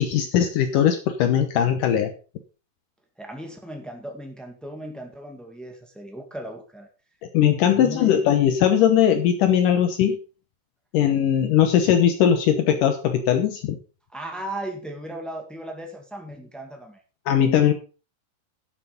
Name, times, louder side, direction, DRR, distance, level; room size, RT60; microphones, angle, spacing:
voice 1, 0.0-2.1 7.3-10.2 10.9-13.8 17.3-17.7, left 9 dB, 70° left, 7 dB, 2.4 m, -19 dB
voice 2, 3.2-6.9 7.7-8.2 14.1-17.0, right 1 dB, ahead, 3 dB, 0.4 m, -36 dB
12.0 x 7.4 x 5.1 m, 0.34 s
omnidirectional pair, 4.1 m